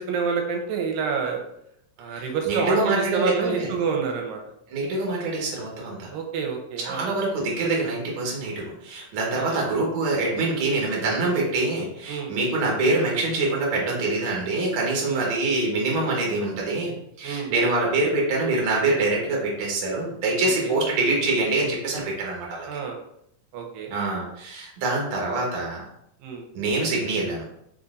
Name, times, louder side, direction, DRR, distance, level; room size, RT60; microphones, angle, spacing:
voice 1, 0.0-1.4 2.0-4.4 6.1-7.1 9.3-9.8 12.1-12.3 15.0-15.3 17.2-17.5 20.4-20.8 22.7-23.0 23.5-23.9 26.2-26.5, right 5 dB, 90° right, 3 dB, 2.3 m, -28 dB
voice 2, 2.1-3.7 4.7-6.1 6.8-22.7 23.9-25.8 26.5-27.4, right 2 dB, 60° right, -2 dB, 1.4 m, -25 dB
4.5 x 3.9 x 2.5 m, 0.75 s
omnidirectional pair, 4.0 m